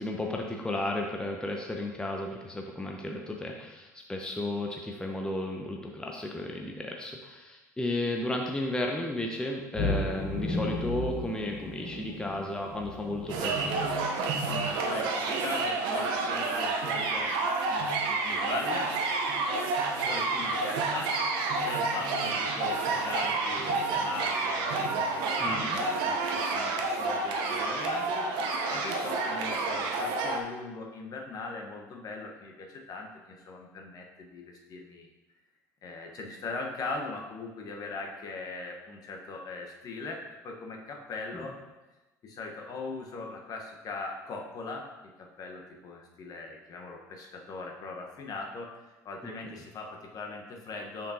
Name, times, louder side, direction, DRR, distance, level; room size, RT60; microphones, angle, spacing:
voice 1, 0.0-13.7 25.4-25.8 41.3-41.5 49.2-49.3, left 1 dB, 10° left, 1 dB, 0.7 m, -33 dB
sound 1, 9.7-14.8, left 1 dB, 70° left, 1.7 m, -35 dB
sound 2, 13.3-30.4, right 3 dB, 60° right, 0.8 m, -29 dB
voice 2, 14.4-17.4 17.7-18.9 20.1-21.2 21.6-35.1 35.8-41.6 42.2-48.7 49.0-51.1, left 3 dB, 45° left, 1 dB, 1.1 m, -40 dB
6.5 x 5.7 x 2.8 m, 1.1 s
hypercardioid pair, 65°, 9 cm